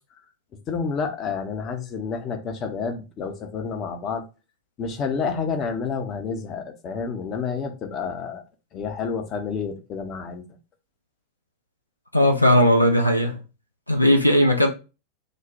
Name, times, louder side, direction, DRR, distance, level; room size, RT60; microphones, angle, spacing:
voice 1, 0.7-4.2 4.8-8.4 8.7-10.4, left 5 dB, 30° left, 0.6 m, -29 dB
voice 2, 12.1-13.4 13.9-14.7, equal, 85° left, 0.4 m, -17 dB
3.0 x 2.1 x 3.9 m
figure-of-eight pair, 90°, 0 cm